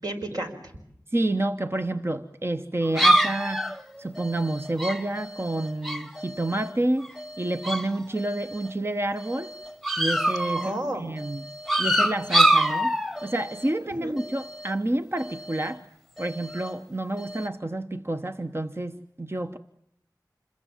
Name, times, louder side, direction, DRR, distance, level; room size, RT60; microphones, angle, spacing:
voice 1, 0.0-0.6 10.6-11.1 14.0-14.2, right 1 dB, 60° right, 2 dB, 5.2 m, -31 dB
voice 2, 1.1-3.7 4.0-9.5 10.0-10.6 10.9-11.4 11.8-15.8 16.2-19.6, right 1 dB, 35° right, 7 dB, 1.0 m, -29 dB
sound 1, 2.8-6.7 7.0-7.9 8.2-8.7 9.2-10.8 11.2-13.7 14.2-14.7 15.2-15.7 16.2-16.7 17.2-17.5, right 1 dB, ahead, 1.3 m, -26 dB
27.0 x 22.0 x 7.4 m, 0.73 s
wide cardioid pair, 50°, 7 cm